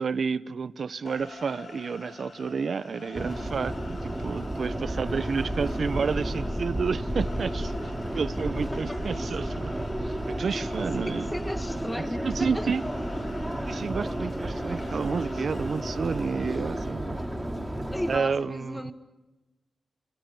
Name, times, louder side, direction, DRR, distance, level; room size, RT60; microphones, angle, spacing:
voice 1, 0.0-9.7 10.3-11.3 12.0-12.8 13.7-17.2 18.1-18.9, right 5 dB, 60° right, 1.0 m, -30 dB
sound 1, 1.1-16.5, left 4 dB, 50° left, 2.2 m, -47 dB
Subway metro underground, 3.2-18.2, right 1 dB, 5° right, 3.1 m, -32 dB
voice 2, 8.0-8.5 8.7-9.0 10.8-12.7 17.9-18.9, left 1 dB, 10° left, 1.8 m, -36 dB
29.0 x 27.5 x 7.2 m
cardioid pair, 80°, 0 cm